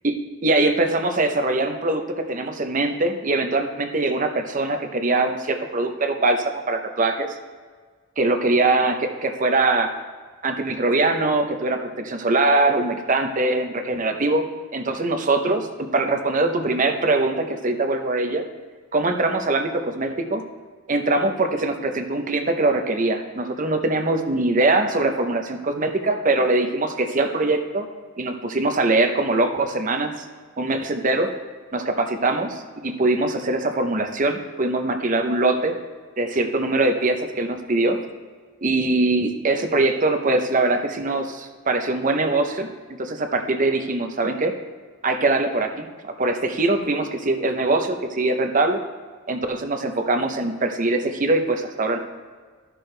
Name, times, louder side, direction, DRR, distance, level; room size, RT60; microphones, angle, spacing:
voice 1, 0.4-7.4 8.2-9.9 10.4-15.7 15.9-18.4 18.9-20.4 20.9-27.9 28.2-30.2 30.6-31.3 31.7-35.8 36.2-38.0 38.6-42.7 43.0-44.5 45.0-48.8 49.3-52.0, right 2 dB, 40° right, 6 dB, 0.8 m, -22 dB
13.5 x 6.1 x 3.3 m, 1.5 s
head